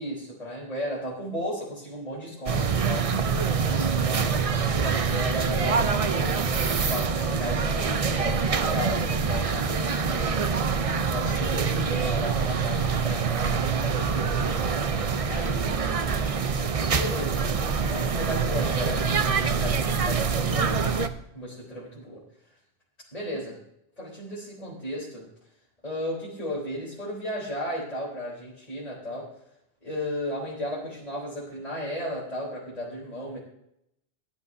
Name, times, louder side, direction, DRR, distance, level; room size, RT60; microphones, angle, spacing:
voice 1, 0.0-3.1 3.7-10.6 11.1-14.4 14.9-16.4 16.9-17.4 17.9-21.0 21.3-22.2 23.1-23.6 24.0-25.3 25.8-29.3 29.8-33.4, equal, 35° left, -7 dB, 3.8 m, -35 dB
sound 1, 2.5-21.1, right 5 dB, 40° right, 0.6 m, -25 dB
17.5 x 10.5 x 2.7 m, 0.77 s
omnidirectional pair, 1.1 m